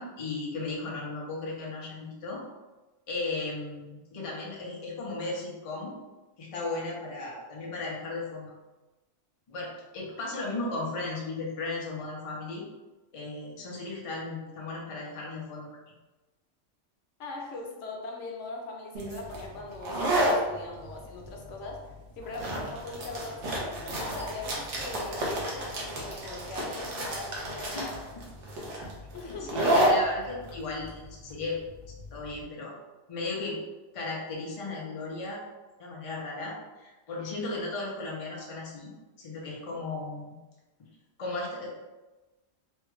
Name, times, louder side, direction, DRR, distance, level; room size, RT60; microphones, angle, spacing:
voice 1, 0.0-2.4 3.1-5.9 6.4-8.5 9.5-12.6 13.1-15.7 27.7-28.0 29.2-31.6 31.9-32.7 33.1-33.6 33.9-35.4 35.8-38.9 39.2-40.3 41.2-41.8, left 3 dB, 35° left, -3 dB, 0.6 m, -36 dB
voice 2, 17.2-28.0 29.1-29.7, left 3 dB, 90° left, 0 dB, 1.0 m, -41 dB
sound 1, 18.9-32.4, right 1 dB, 75° right, 1.1 m, -31 dB
3.3 x 2.3 x 3.1 m, 1.1 s
omnidirectional pair, 1.2 m